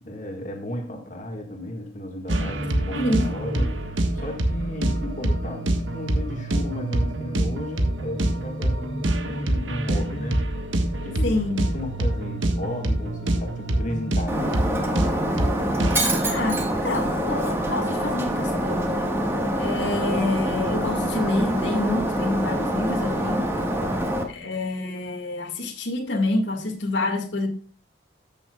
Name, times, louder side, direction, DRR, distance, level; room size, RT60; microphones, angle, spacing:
voice 1, 0.0-10.4 11.0-11.4 11.7-15.4 23.7-24.0, left 1 dB, 40° left, 1.7 m, -34 dB
sound 1, 2.3-16.2, right 1 dB, 85° right, 1.5 m, -26 dB
voice 2, 2.9-3.3 3.5-3.7 11.2-11.6 16.2-19.2 19.6-23.4 24.3-27.5, left 2 dB, 75° left, 1.9 m, -27 dB
Shatter, 14.3-24.2, right 1 dB, 15° right, 1.5 m, -25 dB
14.0 x 7.0 x 2.3 m
head